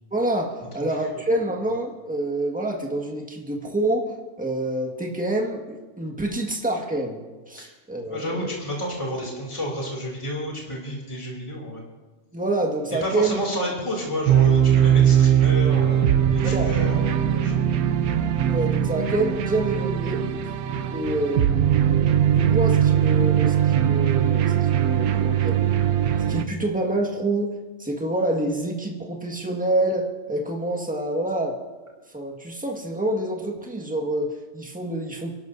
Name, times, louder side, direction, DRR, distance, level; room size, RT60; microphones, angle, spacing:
voice 1, 0.1-7.2 7.5-8.5 12.3-13.4 16.4-16.7 18.5-20.2 20.9-25.6 26.3-27.5 27.8-31.6 32.1-35.4, right 1 dB, 5° right, 0 dB, 1.6 m, -27 dB
voice 2, 0.8-1.2 7.6-7.7 8.1-11.8 13.0-17.7, equal, 20° left, -2 dB, 2.9 m, -31 dB
sound 1, 14.3-26.4, right 9 dB, 80° right, 1.1 m, -20 dB
29.0 x 12.0 x 2.7 m, 1.2 s
omnidirectional pair, 1.5 m